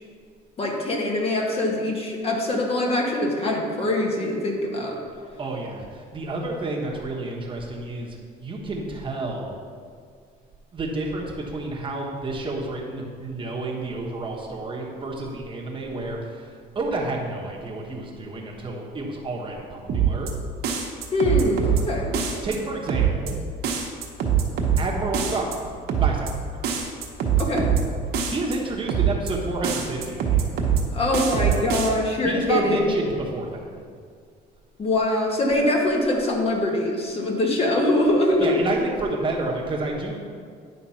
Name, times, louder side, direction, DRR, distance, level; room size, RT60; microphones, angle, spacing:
voice 1, 0.6-5.0 21.1-22.1 27.4-27.7 30.9-32.9 34.8-38.6, left 1 dB, 35° left, 0 dB, 1.4 m, -23 dB
voice 2, 5.2-9.6 10.7-20.3 22.4-23.4 24.8-25.5 26.0-26.7 28.3-30.7 32.2-33.8 38.4-40.2, right 2 dB, 30° right, -1 dB, 1.2 m, -30 dB
sound 1, 19.9-20.3 20.6-21.8 22.1-22.6 22.9-23.3 23.6-24.8 25.1-25.6 25.9-26.3 26.6-27.8 28.1-28.6 28.9-29.3 29.6-30.8 31.1-31.9, right 8 dB, 70° right, 1.1 m, -23 dB
10.0 x 3.7 x 5.7 m, 2.1 s
cardioid pair, 110°, 17 cm